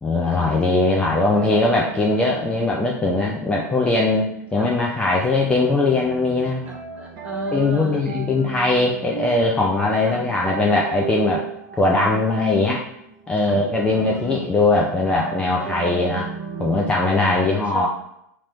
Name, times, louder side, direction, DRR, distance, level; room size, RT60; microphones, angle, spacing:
voice 1, 0.0-6.6 7.5-11.5 11.8-12.8 13.3-16.3 16.6-17.9, left 2 dB, 10° left, -2 dB, 0.4 m, -20 dB
sound 1, 0.9-16.9, right 6 dB, 45° right, 0.7 m, -36 dB
voice 2, 6.7-8.2 10.0-10.3 12.0-12.2 13.4-13.6 13.9-14.5 15.5-16.3 17.2-17.9, right 1 dB, 15° right, 0 dB, 0.8 m, -35 dB
2.9 x 2.9 x 4.5 m, 0.77 s
figure-of-eight pair, 90°, 10 cm